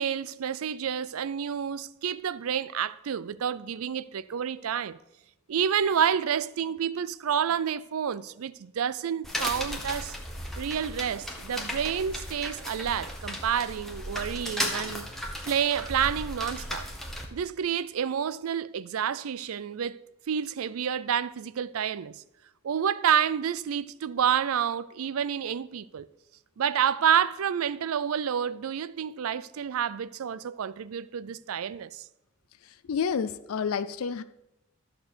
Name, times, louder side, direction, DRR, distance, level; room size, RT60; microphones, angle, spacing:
voice 1, 0.0-5.0 5.5-10.1 10.6-15.1 15.5-16.9 17.3-19.9 20.3-22.2 22.6-26.1 26.6-32.0, right 8 dB, 80° right, 0.4 m, -29 dB
sound 1, 9.2-17.2, equal, ahead, 1.4 m, -35 dB
voice 2, 32.6-34.2, left 6 dB, 80° left, 0.4 m, -30 dB
13.0 x 4.5 x 6.7 m
head